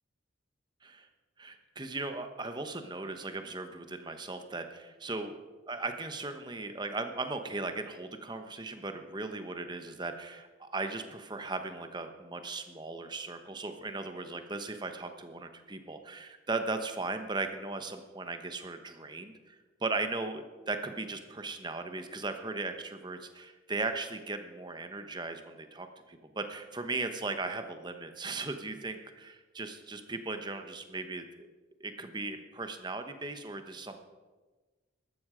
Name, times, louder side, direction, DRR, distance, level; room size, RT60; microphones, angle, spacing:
voice 1, 1.4-5.4 5.7-31.5 31.8-34.0, right 3 dB, 20° right, 7 dB, 1.0 m, -37 dB
14.0 x 12.5 x 5.0 m, 1.3 s
head